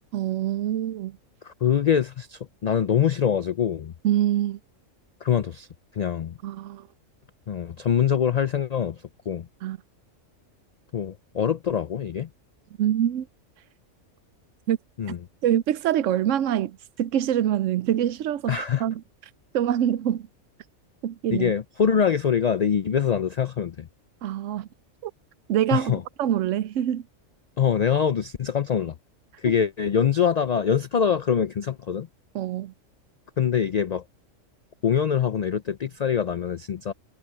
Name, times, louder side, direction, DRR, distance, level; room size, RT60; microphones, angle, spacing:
voice 1, 0.1-1.2 4.0-4.6 6.4-6.9 9.6-9.8 12.8-13.3 14.7-14.8 15.4-19.0 19.5-20.3 21.0-21.5 24.2-24.7 25.0-25.1 25.5-25.9 26.2-27.0 32.3-32.7, right 11 dB, 75° right, 0.9 m, -25 dB
voice 2, 1.4-3.9 5.2-5.7 5.9-6.4 7.5-9.5 10.9-12.3 15.0-15.2 18.5-18.9 21.3-23.9 25.7-26.0 27.6-29.0 29.4-32.1 33.4-34.0 34.8-36.9, left 8 dB, 85° left, 0.3 m, -24 dB
omnidirectional pair, 1.4 m